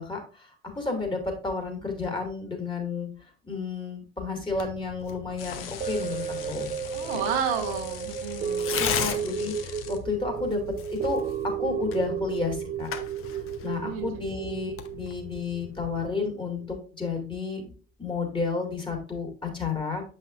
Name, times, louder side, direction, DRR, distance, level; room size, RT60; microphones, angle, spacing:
voice 1, 0.0-3.1 3.4-6.7 8.7-10.6 10.9-11.2 11.6-12.9 13.6-17.7 18.0-20.0, left 4 dB, 15° left, 2 dB, 2.2 m, -31 dB
Tearing, 4.5-16.0, left 9 dB, 45° left, 0.9 m, -38 dB
sound 1, 5.4-10.0, left 8 dB, 80° left, 0.6 m, -43 dB
sound 2, 5.8-16.2 16.6-16.7, right 8 dB, 25° right, 0.6 m, -33 dB
voice 2, 6.9-9.2 13.8-14.2, right 7 dB, 70° right, 3 dB, 1.0 m, -32 dB
7.7 x 5.4 x 2.5 m, 0.36 s
figure-of-eight pair, 45°, 29 cm